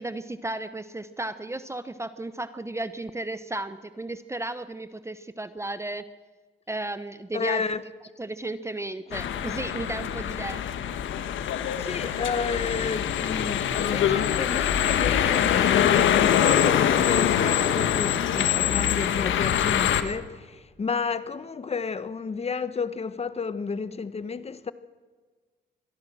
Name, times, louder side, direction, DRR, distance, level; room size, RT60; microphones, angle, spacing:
voice 1, 0.0-6.0 6.7-7.6 8.2-10.6, right 2 dB, 15° right, 0.9 m, -34 dB
voice 2, 7.3-7.8 11.8-24.7, left 5 dB, 30° left, 1.2 m, -31 dB
sound 1, 9.1-20.0, left 9 dB, 75° left, 1.5 m, -24 dB
24.5 x 17.0 x 6.4 m
cardioid pair, 90°, 20 cm